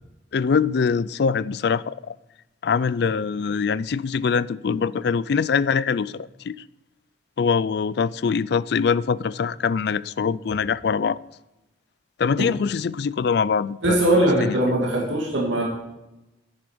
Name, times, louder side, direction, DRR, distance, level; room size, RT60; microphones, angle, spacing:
voice 1, 0.3-2.1 2.6-6.6 7.4-11.2 12.2-14.0 14.4-14.6, left 6 dB, 60° left, 0.4 m, -23 dB
voice 2, 13.8-15.6, right 1 dB, 90° right, 2.3 m, -20 dB
11.0 x 9.8 x 5.1 m
head